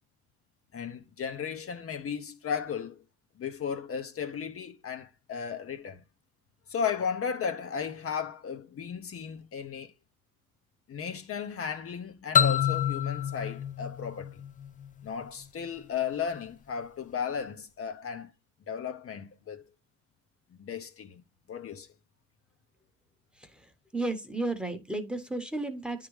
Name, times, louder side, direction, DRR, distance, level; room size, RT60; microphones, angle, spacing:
voice 1, 0.7-3.0 3.4-6.0 6.7-9.9 10.9-14.4 15.0-18.3 18.7-19.6 20.6-21.2 21.5-21.9, left 7 dB, 50° left, 0.8 m, -35 dB
sound 1, 12.3-15.0, left 9 dB, 25° left, 0.4 m, -27 dB
voice 2, 23.3-26.1, right 2 dB, 5° right, 1.0 m, -34 dB
9.4 x 3.7 x 3.1 m
cardioid pair, 90°, 30 cm